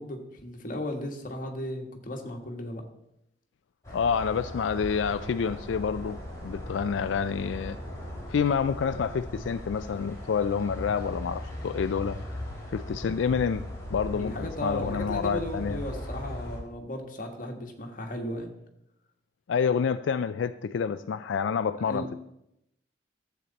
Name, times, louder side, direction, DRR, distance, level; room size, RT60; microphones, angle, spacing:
voice 1, 0.0-2.8 14.1-18.5 21.8-22.2, left 1 dB, 45° left, 1.6 m, -36 dB
sound 1, 3.8-16.6, left 1 dB, 15° left, 3.3 m, -39 dB
voice 2, 3.9-7.8 8.3-12.2 12.7-15.8 19.5-22.1, left 6 dB, 90° left, 0.4 m, -28 dB
sound 2, 4.7-10.7, equal, 90° right, 2.6 m, -49 dB
13.5 x 7.9 x 4.1 m
head